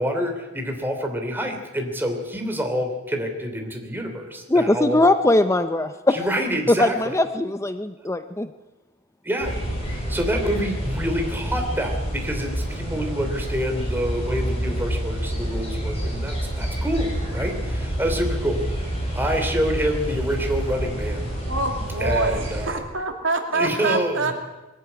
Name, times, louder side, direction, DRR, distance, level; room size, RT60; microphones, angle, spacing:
voice 1, 0.0-5.0 6.1-7.2 9.2-9.6 9.8-18.6 19.1-21.3 22.0-22.8 23.5-24.3, equal, 10° right, 3 dB, 3.0 m, -27 dB
voice 2, 4.5-6.4 6.7-8.5, left 2 dB, 15° left, 10 dB, 0.6 m, -20 dB
sound 1, 9.4-22.6, right 1 dB, 30° left, 7.5 m, -28 dB
voice 3, 21.5-24.3, right 3 dB, 65° right, 4 dB, 2.8 m, -26 dB
21.0 x 14.0 x 9.8 m, 1.1 s
head